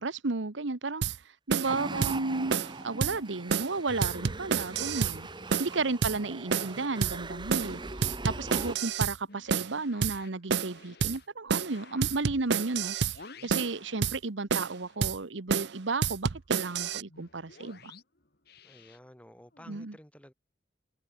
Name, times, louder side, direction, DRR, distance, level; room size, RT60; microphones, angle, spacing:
voice 1, 0.0-2.6 2.8-5.3 5.6-17.9 19.7-20.0, right 3 dB, 80° right, 1.2 m, -33 dB
sound 1, 1.0-1.2 1.5-1.7 2.0-2.2 2.5-2.7 3.0-3.2 3.5-3.7 4.0-5.2 5.5-5.7 6.0-6.2 6.5-6.7 7.0-7.2 7.5-7.7 8.0-9.2 9.5-9.7 10.0-10.2 10.5-10.7 11.0-11.2 11.5-11.7 12.0-13.2 13.5-13.7 14.0-14.2 14.5-14.8 15.0-15.2 15.5-15.7 16.0-17.0, right 6 dB, 65° right, 0.6 m, -29 dB
sound 2, 1.6-8.8, right 2 dB, 25° right, 1.4 m, -40 dB
sound 3, 3.3-6.4 6.7-14.3 14.6-19.8, left 3 dB, 55° left, 3.1 m, -55 dB
voice 2, 6.1-6.7 18.6-20.3, equal, 5° left, 4.7 m, -53 dB
head